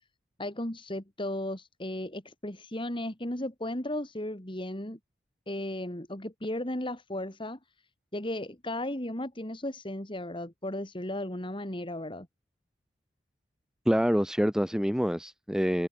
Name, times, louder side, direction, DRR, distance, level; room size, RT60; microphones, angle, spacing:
voice 1, 0.4-5.0 5.5-7.6 8.1-12.3, left 1 dB, 25° left, 2.6 m, -35 dB
voice 2, 13.8-15.9, equal, 5° right, 1.6 m, -26 dB
head